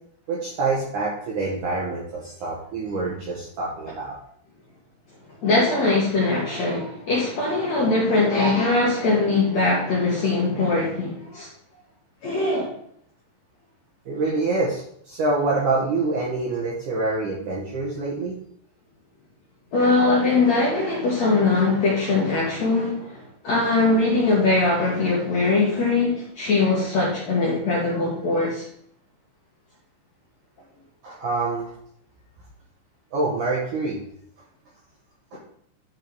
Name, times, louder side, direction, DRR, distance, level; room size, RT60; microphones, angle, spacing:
voice 1, 0.3-4.2 14.1-18.4 31.0-31.7 33.1-34.0 35.3-35.4, right 3 dB, 65° right, -4 dB, 2.1 m, -26 dB
voice 2, 5.4-11.5 12.2-12.7 19.7-28.6, left 3 dB, 60° left, -5 dB, 2.0 m, -21 dB
10.5 x 4.7 x 4.7 m, 0.67 s
omnidirectional pair, 5.2 m